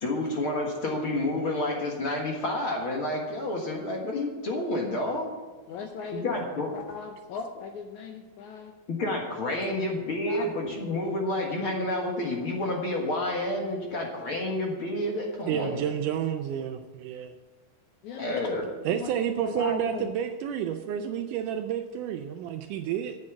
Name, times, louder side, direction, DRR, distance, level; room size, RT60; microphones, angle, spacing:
voice 1, 0.0-5.3 6.1-6.7 8.9-15.8 18.2-18.6, left 1 dB, 50° left, 0 dB, 1.9 m, -29 dB
voice 2, 5.7-6.4 6.7-8.7 10.3-10.8 13.9-14.0 18.0-18.4 18.9-19.1 19.4-20.1, left 5 dB, 75° left, 4 dB, 1.8 m, -37 dB
voice 3, 15.5-16.8 17.0-17.3 18.9-23.2, right 9 dB, 80° right, 7 dB, 1.9 m, -30 dB
8.5 x 8.5 x 7.4 m, 1.3 s
omnidirectional pair, 4.1 m